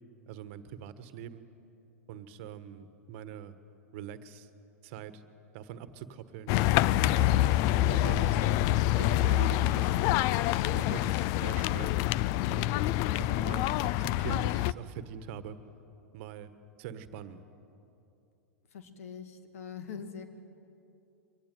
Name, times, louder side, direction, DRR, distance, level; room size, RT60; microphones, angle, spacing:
voice 1, 0.3-1.4 2.1-3.5 3.9-4.5 4.8-5.2 5.5-6.5 7.1-7.5 7.8-8.5 9.0-10.1 10.6-12.0 12.5-12.8 13.2-15.6 16.1-16.5 16.8-17.4, right 9 dB, 55° right, 12 dB, 1.4 m, -43 dB
sound 1, 6.5-14.7, left 15 dB, 50° left, 0.5 m, -26 dB
voice 2, 18.7-20.2, left 7 dB, 75° left, 7 dB, 2.4 m, -43 dB
24.5 x 18.0 x 9.3 m, 2.8 s
hypercardioid pair, 105°, 8 cm